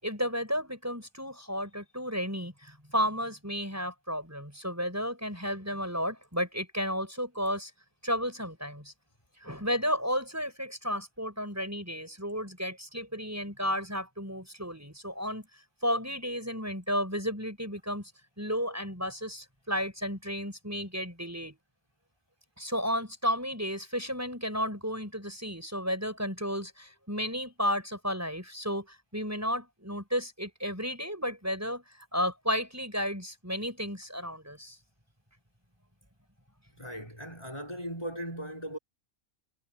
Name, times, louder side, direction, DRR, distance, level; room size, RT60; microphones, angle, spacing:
voice 1, 0.0-7.7 8.0-8.9 9.4-15.5 15.8-18.1 18.4-21.6 22.6-31.8 32.1-34.8, equal, 10° right, 7.6 m, -33 dB
voice 2, 36.8-38.8, equal, 20° left, 6.1 m, -38 dB
omnidirectional pair, 1.5 m